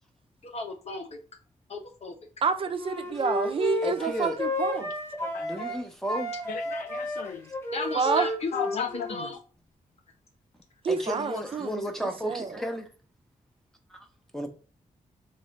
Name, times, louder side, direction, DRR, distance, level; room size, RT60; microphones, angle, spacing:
voice 1, 0.4-1.2 1.7-2.1 7.7-8.5 8.8-9.4, left 3 dB, 50° left, 0.9 m, -34 dB
voice 2, 2.4-4.9 7.9-8.3 10.8-12.6, right 5 dB, 40° right, 0.4 m, -28 dB
Wind instrument woodwind instrument, 2.7-5.8 6.1-9.4, left 1 dB, 20° left, 1.0 m, -32 dB
voice 3, 3.8-4.3 5.4-6.3 10.9-12.9 14.3-14.5, equal, 5° left, 0.6 m, -33 dB
voice 4, 5.2-5.6 6.5-7.5 8.5-9.3, left 8 dB, 85° left, 0.4 m, -36 dB
3.8 x 2.6 x 3.1 m
wide cardioid pair, 140°, 14 cm